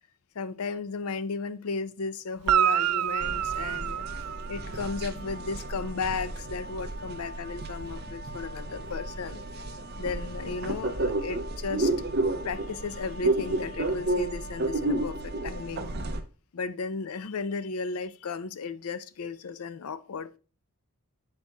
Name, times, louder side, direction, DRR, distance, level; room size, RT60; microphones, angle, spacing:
voice 1, 0.3-4.1 4.5-9.5 10.0-11.9 12.4-15.9 16.5-20.4, left 4 dB, 85° left, 0.5 m, -35 dB
Guitar, 2.4-5.0 8.8-8.9, right 10 dB, 80° right, 0.3 m, -27 dB
sound 1, 3.2-16.2, right 2 dB, 45° right, 0.7 m, -32 dB
7.7 x 4.4 x 3.4 m
head